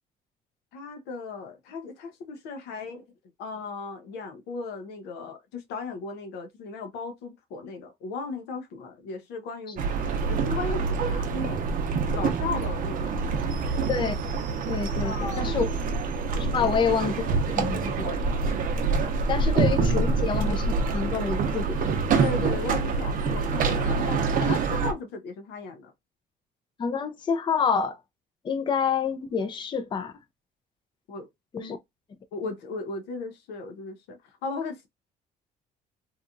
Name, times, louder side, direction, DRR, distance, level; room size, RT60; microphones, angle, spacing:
voice 1, 0.7-3.1 3.4-11.6 11.9-13.8 15.0-15.5 16.6-16.7 22.1-25.9 31.1-31.3 31.6-31.7 32.3-34.9, left 3 dB, 90° left, 0.6 m, -36 dB
sound 1, 9.8-24.9, right 4 dB, 55° right, 0.6 m, -26 dB
voice 2, 14.7-15.7 16.4-17.2 17.5-18.2 19.3-21.8 26.8-28.0 28.4-30.1 31.5-31.8, left 6 dB, 30° left, 0.4 m, -27 dB
2.8 x 2.3 x 2.5 m
cardioid pair, 110°, 17 cm